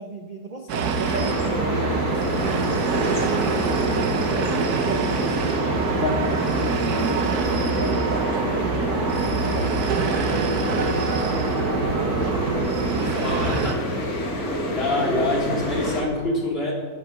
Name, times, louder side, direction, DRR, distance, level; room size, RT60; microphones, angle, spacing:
voice 1, 0.0-3.3 3.6-6.5 6.7-12.6 12.9-13.8 14.4-14.8, right 4 dB, 40° right, 3 dB, 0.8 m, -36 dB
sound 1, 0.7-13.7, right 5 dB, 80° right, 1.5 m, -25 dB
sound 2, 1.0-16.0, left 1 dB, 70° left, 2.4 m, -28 dB
voice 2, 13.2-13.8 14.7-16.7, left 2 dB, 40° left, -3 dB, 3.2 m, -25 dB
11.5 x 9.9 x 6.4 m, 1.5 s
omnidirectional pair, 1.6 m